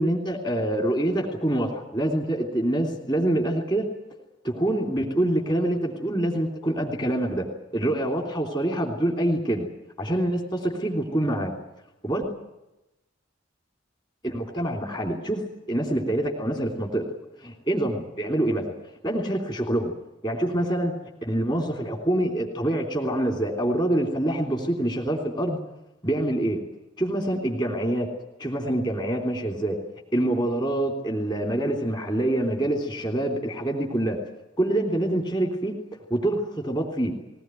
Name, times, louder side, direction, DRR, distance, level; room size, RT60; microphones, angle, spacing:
voice 1, 0.0-3.9 4.4-9.7 10.0-11.5 12.0-12.3 14.2-17.1 17.4-18.7 19.0-19.9 20.2-20.9 21.2-25.6 26.0-26.6 27.0-28.1 28.4-29.8 30.1-34.2 34.6-35.8 36.1-37.1, right 1 dB, 25° left, 0 dB, 3.3 m, -26 dB
20.5 x 19.0 x 9.2 m, 0.93 s
head